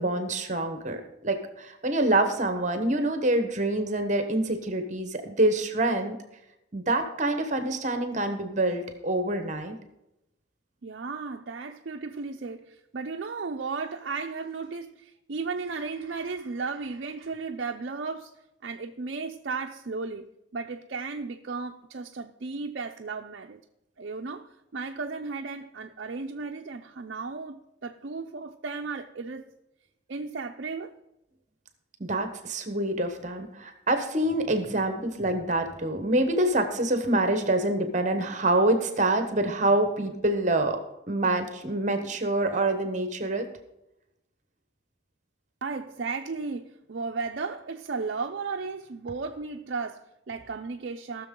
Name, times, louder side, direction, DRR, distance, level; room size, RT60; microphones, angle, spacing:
voice 1, 0.0-6.2 6.7-9.8 32.0-40.8 41.1-43.5, right 2 dB, 35° right, 1.0 m, -26 dB
voice 2, 10.8-18.3 18.6-23.6 24.0-29.5 30.1-30.9 45.6-51.3, right 4 dB, 60° right, 0.5 m, -35 dB
18.0 x 6.5 x 3.7 m
head